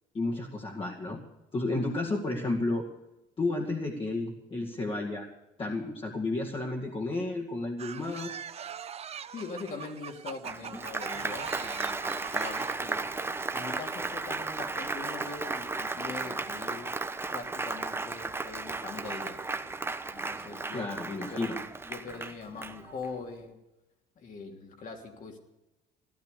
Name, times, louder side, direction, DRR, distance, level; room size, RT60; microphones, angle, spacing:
voice 1, 0.1-1.2 1.5-2.9 3.4-5.3 5.6-8.4 20.7-21.6, left 2 dB, 30° left, -2 dB, 2.3 m, -32 dB
sound 1, 7.8-12.8, right 8 dB, 40° right, 0.7 m, -42 dB
voice 2, 9.3-13.0 13.5-16.9 17.3-19.8 20.1-23.6 24.1-25.4, left 4 dB, 50° left, 3 dB, 3.0 m, -42 dB
Applause, 10.4-23.2, right 3 dB, 15° right, 1.0 m, -35 dB
15.0 x 12.0 x 6.8 m, 0.95 s
cardioid pair, 110°, 17 cm